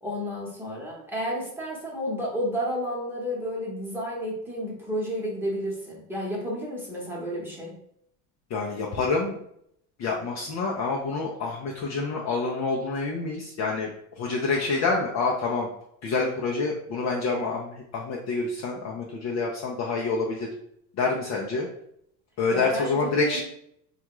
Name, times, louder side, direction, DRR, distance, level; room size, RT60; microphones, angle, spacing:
voice 1, 0.0-7.7 22.5-23.4, equal, 5° right, -4 dB, 1.0 m, -31 dB
voice 2, 8.5-9.4 10.0-13.9 14.2-15.7 16.0-20.5 21.0-21.7 22.4-23.4, left 3 dB, 35° left, -2 dB, 0.5 m, -27 dB
3.4 x 2.4 x 3.0 m, 0.71 s
supercardioid pair, 110°, 47 cm